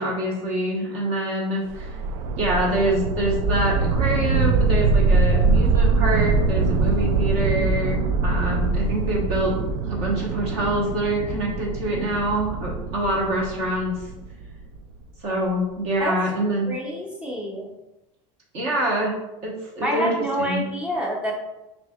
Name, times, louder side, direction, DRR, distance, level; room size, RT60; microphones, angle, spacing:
voice 1, 0.0-1.9 2.4-9.6 9.8-14.0 15.2-16.8 18.5-19.2 19.4-20.7, right 1 dB, 40° right, -3 dB, 1.1 m, -25 dB
sound 1, 1.7-14.8, right 3 dB, 75° right, 0.4 m, -23 dB
voice 2, 16.7-17.7 19.8-21.3, equal, 5° right, -2 dB, 0.6 m, -27 dB
6.9 x 2.7 x 2.3 m, 0.98 s
cardioid pair, 175°, 17 cm